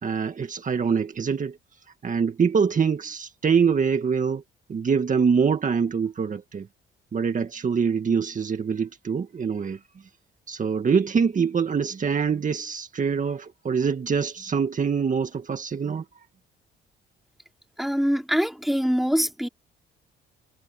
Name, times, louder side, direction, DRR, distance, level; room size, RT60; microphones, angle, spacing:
voice 1, 0.0-1.6 2.0-4.4 4.7-6.7 7.1-9.8 10.5-16.0, right 6 dB, 40° right, 1.9 m, -24 dB
voice 2, 17.8-19.5, equal, ahead, 3.9 m, -24 dB
cardioid pair, 90°, 20 cm